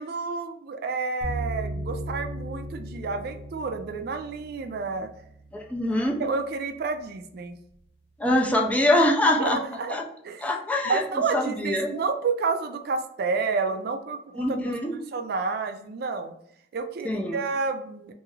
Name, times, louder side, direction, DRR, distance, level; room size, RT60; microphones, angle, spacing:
voice 1, 0.0-5.1 5.8-7.6 9.4-10.0 10.2-10.5 10.9-14.7 15.1-16.3 16.7-18.1, right 4 dB, 60° right, 6 dB, 0.3 m, -30 dB
sound 1, 1.2-6.3, right 1 dB, 35° left, 0.8 m, -37 dB
voice 2, 5.5-6.2 8.2-9.6 9.9-10.0 10.4-11.0 11.3-12.0 14.4-15.0 17.0-17.4, left 1 dB, 10° left, 1 dB, 0.4 m, -24 dB
2.6 x 2.4 x 3.1 m, 0.70 s
head